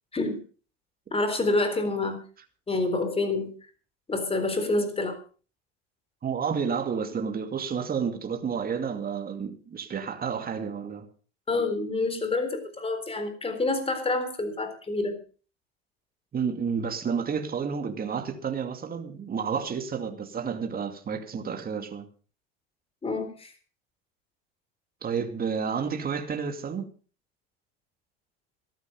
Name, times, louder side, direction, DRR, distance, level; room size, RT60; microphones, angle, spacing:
voice 1, 1.1-2.2 2.7-3.5 4.1-5.2 11.5-15.2 23.0-23.5, left 2 dB, 20° left, 3.9 m, -27 dB
voice 2, 6.2-11.1 16.3-22.1 25.0-26.9, right 6 dB, 30° right, 2.4 m, -30 dB
14.5 x 12.0 x 5.3 m
supercardioid pair, 105°, 32 cm